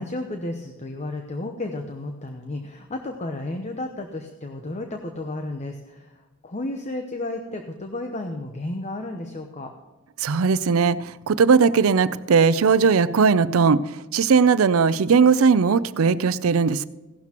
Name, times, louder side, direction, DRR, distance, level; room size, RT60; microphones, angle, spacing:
voice 1, 0.0-9.7, left 2 dB, 35° left, 5 dB, 0.9 m, -32 dB
voice 2, 10.2-11.0 11.3-13.8 14.1-16.9, right 5 dB, 70° right, 16 dB, 0.5 m, -18 dB
16.5 x 12.0 x 3.0 m, 1.2 s
head